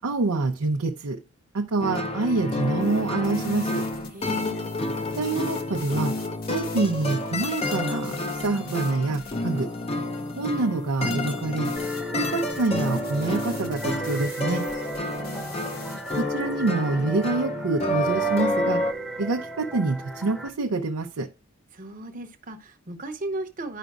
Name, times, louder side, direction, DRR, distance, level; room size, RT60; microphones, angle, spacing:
voice 1, 0.0-1.2 1.5-3.9 5.2-6.2 6.5-9.7 10.4-11.7 12.1-14.7 16.2-18.8 19.2-21.3, right 3 dB, 85° right, 0.6 m, -26 dB
sound 1, 1.8-18.9, left 1 dB, 25° left, 0.5 m, -29 dB
sound 2, 2.8-16.2, left 4 dB, 45° left, 1.2 m, -46 dB
voice 2, 4.1-4.7 15.1-15.6 21.7-23.8, right 2 dB, 40° right, 0.9 m, -36 dB
sound 3, 11.8-20.5, equal, 5° left, 0.8 m, -35 dB
11.0 x 5.1 x 2.4 m
head